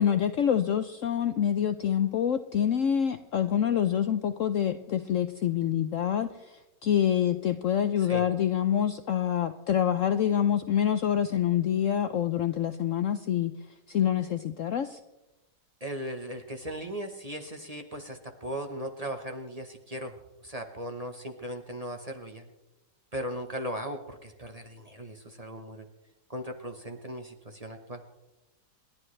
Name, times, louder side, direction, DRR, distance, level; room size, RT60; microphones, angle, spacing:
voice 1, 0.0-13.5 13.9-15.0, left 9 dB, 65° left, 10 dB, 0.8 m, -26 dB
voice 2, 15.8-22.5 23.1-25.9 26.3-28.0, equal, 25° right, 4 dB, 1.0 m, -38 dB
28.5 x 11.5 x 3.3 m, 0.97 s
omnidirectional pair, 1.9 m